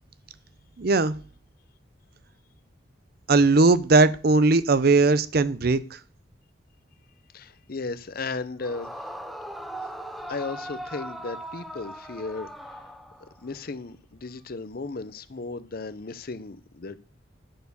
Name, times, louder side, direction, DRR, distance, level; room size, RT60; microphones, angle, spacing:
voice 1, 0.8-1.1 3.3-5.8, right 3 dB, 55° right, 0.6 m, -19 dB
voice 2, 7.3-8.9 10.3-12.5 13.2-17.0, left 3 dB, 50° left, 0.6 m, -35 dB
Yell / Screaming, 8.6-13.5, right 1 dB, ahead, 0.7 m, -39 dB
10.5 x 4.6 x 6.8 m
head